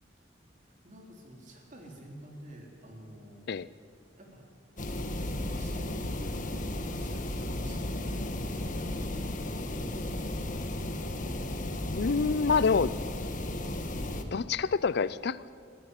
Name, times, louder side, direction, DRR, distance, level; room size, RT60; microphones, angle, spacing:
voice 1, 0.6-3.6 4.2-4.5 4.8-10.5, right 1 dB, 45° right, 1 dB, 3.8 m, -50 dB
sound 1, 4.8-14.2, left 1 dB, 45° left, 1.5 m, -34 dB
voice 2, 11.8-12.9 14.3-15.6, left 5 dB, 60° left, 18 dB, 0.5 m, -27 dB
21.5 x 14.5 x 9.7 m, 2.4 s
head